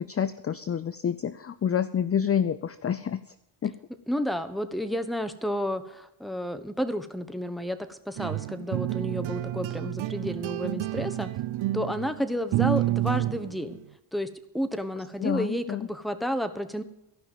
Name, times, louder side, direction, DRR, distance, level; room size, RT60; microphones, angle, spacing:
voice 1, 0.0-3.2 3.6-3.7 15.2-15.9, left 8 dB, 30° left, 13 dB, 0.5 m, -28 dB
voice 2, 4.1-11.3 11.7-13.8 14.1-16.8, equal, ahead, 9 dB, 1.1 m, -31 dB
sound 1, 8.2-13.8, right 15 dB, 70° right, 0.7 m, -29 dB
15.0 x 5.8 x 9.1 m, 0.85 s
cardioid pair, 100°, 50 cm